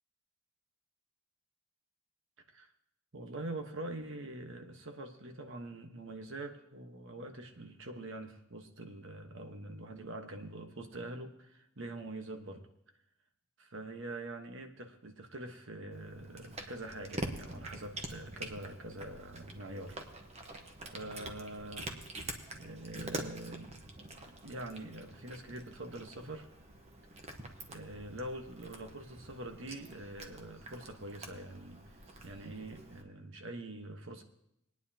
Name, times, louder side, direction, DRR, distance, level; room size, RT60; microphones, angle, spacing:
voice 1, 3.1-12.7 13.6-20.0 20.8-21.9 22.5-26.5 27.1-27.2 27.7-32.0 32.2-34.2, right 1 dB, 60° right, 5 dB, 1.2 m, -44 dB
Cat, 15.9-33.0, right 2 dB, 30° right, 1.0 m, -46 dB
21.5 x 9.5 x 2.8 m, 0.78 s
head